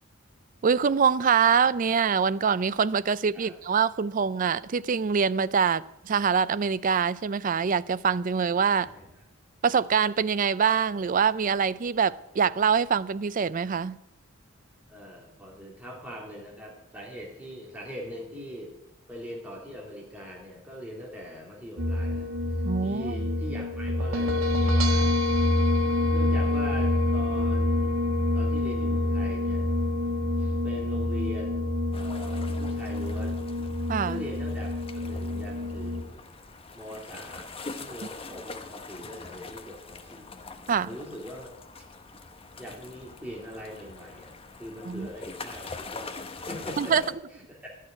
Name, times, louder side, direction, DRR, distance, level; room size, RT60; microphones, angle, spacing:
voice 1, 0.6-8.9 9.6-14.0 22.7-23.2 33.9-34.2 40.7-40.9 44.9-45.1 46.8-47.0, right 6 dB, 40° right, 0.4 m, -24 dB
voice 2, 14.9-18.7 19.1-25.1 26.1-27.9 28.3-29.7 30.4-33.4 34.0-36.2 36.7-40.3 40.8-41.5 41.8-41.9 42.6-47.7, equal, 5° right, 2.1 m, -42 dB
sound 1, 21.8-36.0, left 1 dB, 85° right, 1.5 m, -26 dB
sound 2, 31.9-47.1, left 3 dB, 25° left, 0.9 m, -43 dB
12.5 x 6.5 x 9.8 m
head